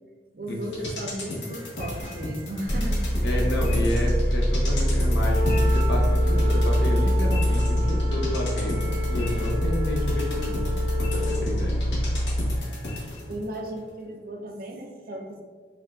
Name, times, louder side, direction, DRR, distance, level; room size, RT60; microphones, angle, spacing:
voice 1, 0.3-3.3 13.3-15.4, right 1 dB, 55° right, 2 dB, 0.5 m, -35 dB
sound 1, 0.6-13.4 13.8-13.9, left 1 dB, 85° left, 0.9 m, -35 dB
sound 2, 2.7-12.6, equal, 55° left, 0.9 m, -24 dB
voice 2, 3.2-10.6 11.1-11.8, left 1 dB, 70° left, -1 dB, 0.6 m, -30 dB
Wind instrument woodwind instrument, 5.1-11.4, left 1 dB, 15° left, 0.6 m, -34 dB
4.7 x 2.3 x 2.3 m, 1.5 s
head